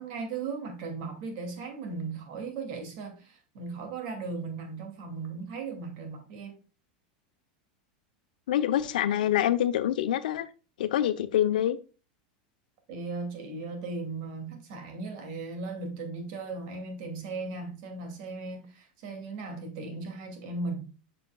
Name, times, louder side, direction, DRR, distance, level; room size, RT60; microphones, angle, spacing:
voice 1, 0.0-6.6 12.9-20.9, right 3 dB, 60° right, 2.6 m, -37 dB
voice 2, 8.5-10.5 10.8-11.8, left 11 dB, 90° left, 0.8 m, -26 dB
7.6 x 6.5 x 2.4 m
supercardioid pair, 135°, 4 cm